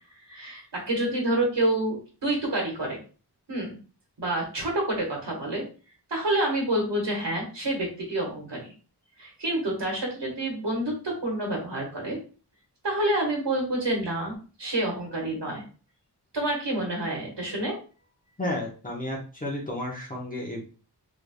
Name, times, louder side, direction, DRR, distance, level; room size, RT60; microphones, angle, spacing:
voice 1, 0.3-2.0 2.2-3.0 3.5-3.8 4.2-5.6 6.1-8.7 9.2-12.2 12.8-14.3 14.6-15.6 16.3-17.8, right 1 dB, 85° right, -1 dB, 1.6 m, -28 dB
voice 2, 18.4-20.6, left 1 dB, 20° left, -3 dB, 1.0 m, -32 dB
3.5 x 3.4 x 2.3 m, 0.36 s
wide cardioid pair, 70°, 41 cm